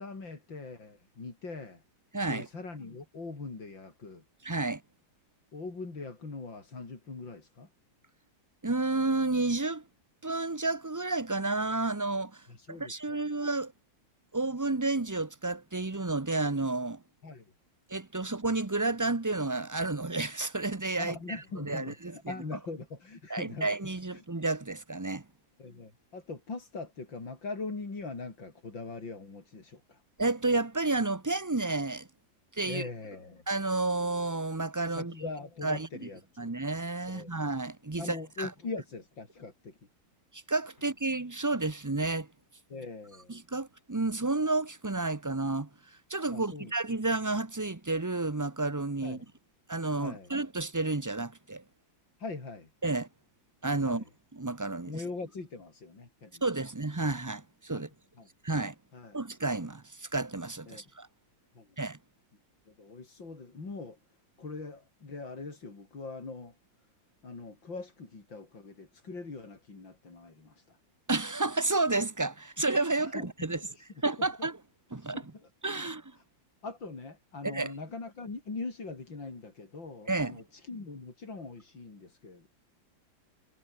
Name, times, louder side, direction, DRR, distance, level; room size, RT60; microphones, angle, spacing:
voice 1, 0.0-1.8 2.3-4.2 5.5-7.7 12.5-13.2 17.2-17.5 21.0-23.7 24.1-24.2 25.6-30.0 32.7-33.4 34.9-36.5 37.1-37.4 38.0-39.8 42.7-43.4 46.3-46.7 49.0-49.3 50.0-50.3 52.2-52.7 53.8-54.1 54.9-56.4 57.7-58.3 58.9-59.2 60.7-60.8 61.5-61.7 62.7-64.0 64.4-66.6 67.2-70.8 73.0-73.9 74.2-74.5 75.0-75.5 75.8-76.2 76.6-82.5, left 3 dB, 75° left, 5.4 m, -42 dB
voice 2, 2.1-2.5 4.4-4.8 8.6-9.8 10.2-12.4 12.7-13.7 14.3-17.0 17.9-21.1 21.6-22.1 23.3-25.2 30.2-32.1 32.5-32.8 33.5-35.1 35.6-35.9 36.4-38.5 40.3-42.3 43.3-45.7 46.1-49.2 49.7-51.6 52.8-53.1 53.6-54.0 54.4-54.9 56.4-57.9 58.4-58.7 59.1-61.1 61.8-62.0 71.1-73.6 74.0-74.6 74.9-75.2 75.6-76.0 77.4-77.7 80.1-80.4, right 2 dB, 20° right, 0.4 m, -31 dB
omnidirectional pair, 2.1 m